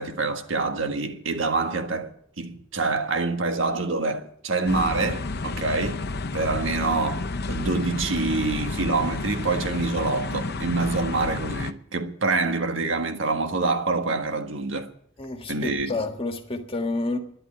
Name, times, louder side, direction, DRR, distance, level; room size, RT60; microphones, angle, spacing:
voice 1, 0.0-2.1 2.4-6.0 6.3-14.9 15.5-15.9, right 3 dB, 75° right, 1.6 m, -26 dB
sound 1, 4.7-11.7, left 3 dB, 55° left, 0.8 m, -31 dB
voice 2, 15.2-17.2, left 2 dB, 30° left, 1.6 m, -29 dB
12.0 x 11.0 x 9.0 m
head